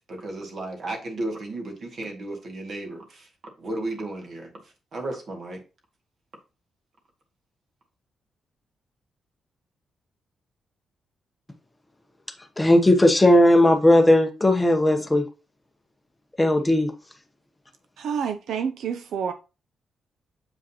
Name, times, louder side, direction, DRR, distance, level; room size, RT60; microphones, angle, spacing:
voice 1, 0.1-3.3 3.6-4.5 4.9-5.6, right 2 dB, 45° right, 1.9 m, -33 dB
voice 2, 12.6-15.3 16.4-16.9, left 1 dB, 10° left, 0.8 m, -17 dB
voice 3, 18.0-19.3, right 7 dB, 75° right, 0.5 m, -28 dB
7.5 x 5.0 x 2.8 m
wide cardioid pair, 155°, 0 cm